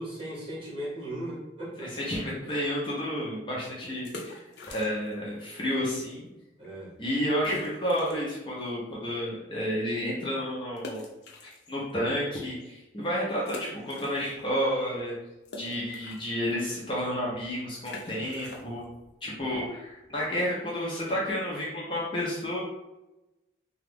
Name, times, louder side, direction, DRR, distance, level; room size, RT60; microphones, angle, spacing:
voice 1, 0.0-1.9 6.6-7.0, right 1 dB, 30° right, -8 dB, 1.4 m, -37 dB
voice 2, 1.8-4.4 4.7-6.3 7.0-11.1 11.4-15.1 15.6-18.9 19.2-22.6, equal, 25° left, -5 dB, 0.6 m, -31 dB
sound 1, 4.0-5.3 5.5-5.6 6.2-6.4 6.6-6.7 7.4-8.4 8.8-8.9 10.8-12.1 12.6-12.7 13.4-14.6 14.9-20.4, left 2 dB, 70° left, 0.6 m, -44 dB
2.9 x 2.3 x 3.4 m, 0.98 s
head